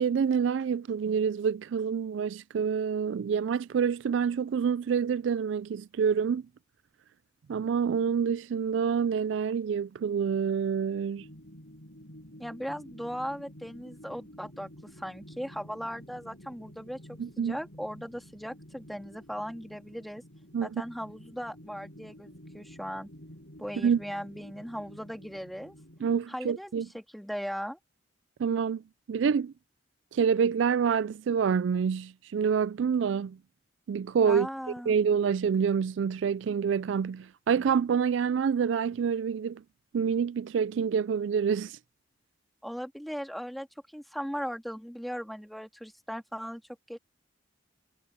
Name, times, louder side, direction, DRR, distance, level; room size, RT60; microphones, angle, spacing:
voice 1, 0.0-6.4 7.5-11.2 17.2-17.6 20.5-20.8 23.8-24.0 26.0-26.9 28.4-28.8 29.1-29.5 30.1-33.4 33.9-34.5 34.9-39.6 39.9-41.8, right 7 dB, 70° right, 0.3 m, -27 dB
sound 1, 11.2-26.2, equal, 65° left, 7.6 m, -50 dB
voice 2, 12.4-14.7 15.0-20.2 20.6-23.1 23.6-25.8 26.3-27.8 34.2-34.9 42.6-43.7 43.9-47.0, equal, ahead, 2.2 m, -38 dB
head